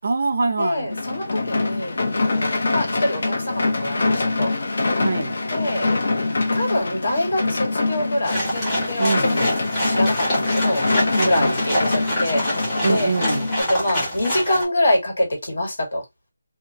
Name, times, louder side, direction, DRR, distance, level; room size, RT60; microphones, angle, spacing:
voice 1, 0.0-0.9 5.0-5.3 9.0-9.4 11.2-11.6 12.8-13.5, right 3 dB, 40° right, 0.5 m, -24 dB
voice 2, 0.6-4.5 5.5-5.9 6.5-9.4 9.9-10.8 11.2-13.1 13.7-16.0, left 1 dB, 65° left, 1.9 m, -25 dB
sound 1, 0.9-13.6, left 3 dB, 50° left, 0.7 m, -24 dB
sound 2, 8.2-14.6, equal, 10° left, 0.7 m, -26 dB
2.7 x 2.3 x 2.8 m
figure-of-eight pair, 180°, 0 cm